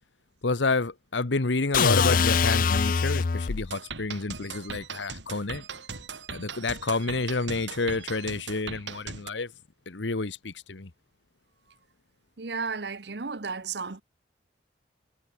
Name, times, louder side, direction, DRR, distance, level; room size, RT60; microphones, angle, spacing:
voice 1, 0.4-5.6 6.3-9.5 9.9-10.9, left 3 dB, 85° left, 1.2 m, -29 dB
sound 1, 1.7-3.7, left 5 dB, 45° left, 0.4 m, -23 dB
sound 2, 3.7-9.3, right 5 dB, 80° right, 4.9 m, -39 dB
voice 2, 12.4-14.0, right 5 dB, 65° right, 1.0 m, -33 dB
head